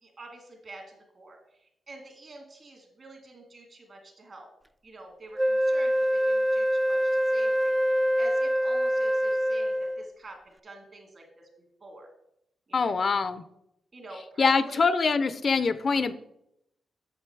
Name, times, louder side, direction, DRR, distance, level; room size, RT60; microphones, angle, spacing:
voice 1, 0.0-4.5 4.8-11.5 11.8-12.1 12.7-12.9 13.9-14.8, right 2 dB, 50° right, 3 dB, 2.4 m, -47 dB
Wind instrument woodwind instrument, 5.4-10.1, equal, 10° right, 0.3 m, -25 dB
voice 2, 12.7-13.4 14.4-16.1, left 4 dB, 55° left, 13 dB, 0.5 m, -24 dB
7.7 x 6.6 x 4.6 m, 0.81 s
cardioid pair, 65°, 0 cm